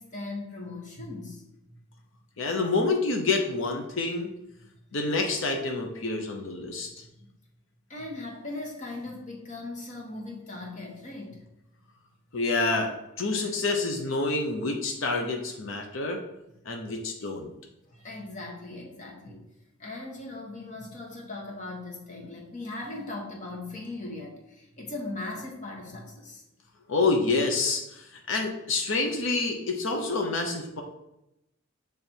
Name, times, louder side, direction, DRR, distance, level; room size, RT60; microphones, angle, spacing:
voice 1, 0.0-1.8 7.2-7.3 7.9-11.4 17.9-19.4 19.8-26.4, left 2 dB, 35° left, 0 dB, 1.2 m, -39 dB
voice 2, 2.4-4.3 4.9-7.0 12.3-16.2 16.6-17.5 26.9-30.8, left 3 dB, 65° left, 3 dB, 0.7 m, -28 dB
6.8 x 3.4 x 4.4 m, 0.88 s
head